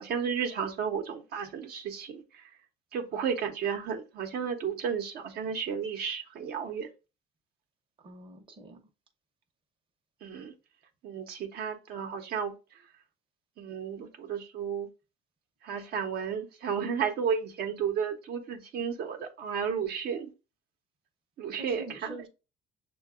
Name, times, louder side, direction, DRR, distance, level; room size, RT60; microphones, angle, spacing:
voice 1, 0.0-2.5 2.9-6.9 10.2-10.5 11.0-12.8 13.6-14.9 15.6-20.3 21.4-22.3, right 7 dB, 70° right, 0.8 m, -33 dB
voice 2, 8.0-8.8 21.6-22.3, right 2 dB, 30° right, 0.7 m, -45 dB
6.5 x 2.3 x 2.3 m
cardioid pair, 110°, 17 cm